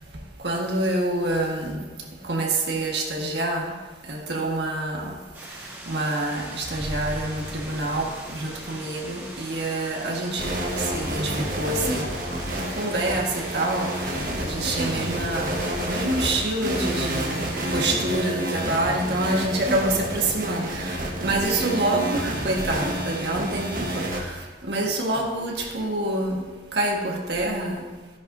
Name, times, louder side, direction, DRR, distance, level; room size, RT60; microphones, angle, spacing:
voice 1, 0.4-1.8 2.2-3.7 4.1-5.2 5.9-10.6 10.9-12.1 12.6-26.4 26.7-27.8, right 2 dB, 70° right, 0 dB, 1.6 m, -27 dB
sound 1, 5.3-17.8, right 1 dB, 15° right, 1.9 m, -41 dB
sound 2, 6.6-21.7, equal, 35° left, 3.7 m, -45 dB
sound 3, 10.4-24.2, right 1 dB, 50° right, 1.4 m, -29 dB
13.0 x 10.5 x 2.7 m, 1.3 s
head